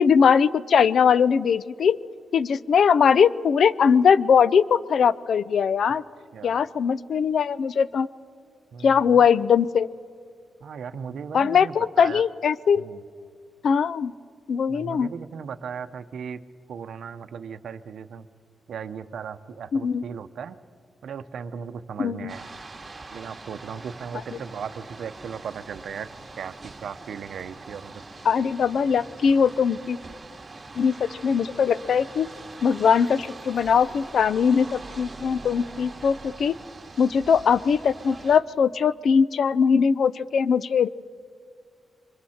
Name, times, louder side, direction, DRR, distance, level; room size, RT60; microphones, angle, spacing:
voice 1, 0.0-2.0 2.3-6.0 6.4-8.1 8.8-9.9 11.3-12.8 13.6-14.1 14.5-15.1 19.7-20.0 22.0-22.3 28.2-30.0 30.8-32.3 32.6-36.6 37.0-40.9, left 6 dB, 70° left, 18 dB, 0.5 m, -20 dB
voice 2, 8.7-9.2 10.6-12.2 12.8-13.0 14.7-16.4 16.7-18.3 18.7-20.6 21.0-22.5 23.1-26.1 26.4-28.0, right 7 dB, 75° right, 10 dB, 0.7 m, -37 dB
sound 1, 22.3-38.4, right 3 dB, 25° right, 1.8 m, -43 dB
27.5 x 23.5 x 4.4 m, 2.2 s
cardioid pair, 105°, 0 cm